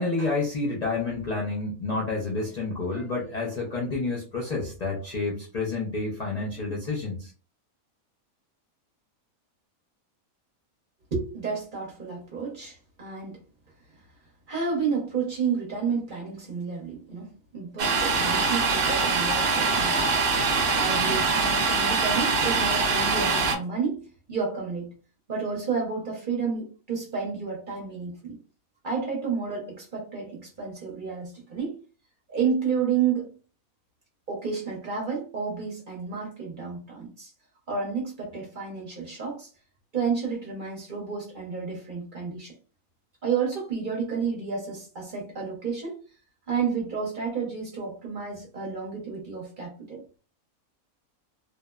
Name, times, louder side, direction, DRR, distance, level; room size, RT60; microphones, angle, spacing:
voice 1, 0.0-7.3, left 3 dB, 70° left, -4 dB, 0.3 m, -29 dB
voice 2, 11.1-13.4 14.5-20.2 20.8-24.0 24.3-24.9 25.3-28.4 28.8-31.8 32.3-33.3 34.3-37.3 37.7-39.5 39.9-42.5 43.2-46.0 46.5-50.0, right 5 dB, 40° right, -3 dB, 0.9 m, -31 dB
Domestic sounds home sounds, 17.8-23.6, right 4 dB, 70° right, 0.5 m, -23 dB
3.0 x 2.0 x 2.2 m, 0.37 s
omnidirectional pair, 1.5 m